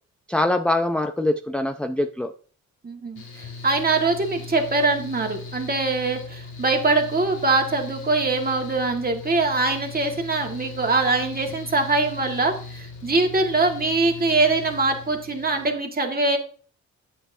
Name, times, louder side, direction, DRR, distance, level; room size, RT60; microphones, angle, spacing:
voice 1, 0.3-2.3, left 2 dB, 5° left, 7 dB, 0.5 m, -23 dB
voice 2, 2.8-16.4, right 3 dB, 30° right, 3 dB, 1.8 m, -23 dB
Mechanical fan, 3.1-15.7, left 3 dB, 80° left, 1.8 m, -39 dB
9.5 x 7.6 x 2.7 m, 0.42 s
cardioid pair, 80°, 30 cm